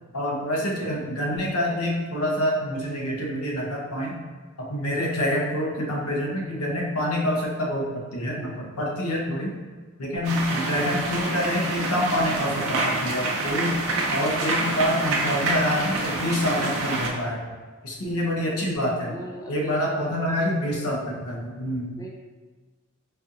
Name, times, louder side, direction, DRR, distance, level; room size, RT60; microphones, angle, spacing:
voice 1, 0.1-4.1 4.6-9.5 10.0-13.8 14.1-17.5 17.8-19.1 19.5-21.9, equal, 90° left, -2 dB, 0.8 m, -26 dB
sound 1, 10.2-17.1, right 2 dB, 70° right, 0.6 m, -27 dB
voice 2, 17.9-18.6 19.0-20.0 20.7-21.2 22.0-22.1, equal, 15° left, -3 dB, 0.4 m, -41 dB
4.1 x 2.5 x 2.6 m, 1.4 s
head